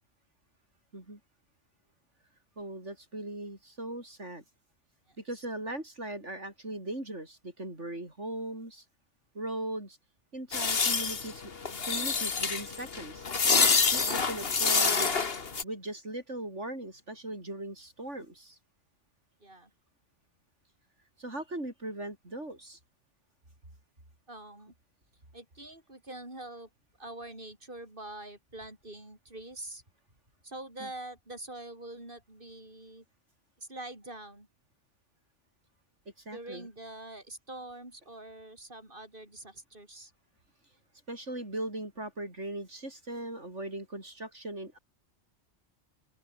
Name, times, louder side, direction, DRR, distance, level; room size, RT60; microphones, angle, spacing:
voice 1, 2.6-4.4 5.2-8.8 9.3-10.0 10.3-11.5 11.8-13.3 13.6-15.2 15.6-18.6 21.2-22.8 30.8-30.9 36.2-36.7 41.1-44.8, right 1 dB, 85° right, 7.7 m, -39 dB
voice 2, 5.1-5.5 13.7-14.2 19.4-19.7 24.3-24.7 25.3-26.7 27.0-29.8 30.4-33.0 33.6-34.5 36.3-40.1, right 1 dB, 45° right, 7.1 m, -45 dB
sound 1, 10.5-15.6, left 5 dB, 55° left, 1.8 m, -27 dB
open air
omnidirectional pair, 1.2 m